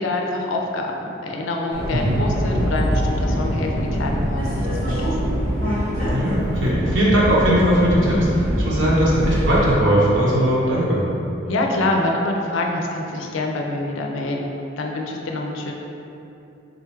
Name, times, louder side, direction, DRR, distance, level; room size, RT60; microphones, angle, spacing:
voice 1, 0.0-5.3 11.5-15.7, left 2 dB, 70° left, 1 dB, 0.5 m, -26 dB
Subway metro underground, 1.7-9.7, equal, 85° right, 1.2 m, -24 dB
voice 2, 6.1-11.0, equal, 60° right, -7 dB, 0.7 m, -19 dB
3.9 x 2.3 x 4.4 m, 2.8 s
head